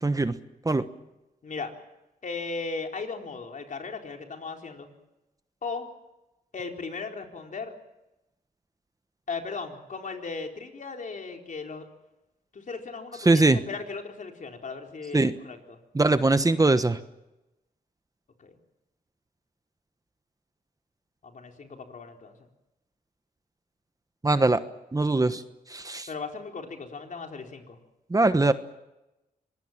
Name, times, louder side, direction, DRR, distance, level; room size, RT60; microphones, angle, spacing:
voice 1, 0.0-0.3 0.6-0.8 13.2-13.6 15.1-15.3 15.9-17.0 24.2-24.6 24.9-25.4 25.7-26.1 28.1-28.5, right 2 dB, 25° right, 11 dB, 1.2 m, -21 dB
voice 2, 2.2-4.9 5.6-5.9 6.5-7.7 9.3-11.9 12.5-15.8 18.4-18.5 21.2-22.3 26.1-27.8, left 4 dB, 55° left, 3 dB, 4.1 m, -37 dB
25.0 x 21.0 x 7.4 m, 0.96 s
cardioid pair, 80°, 16 cm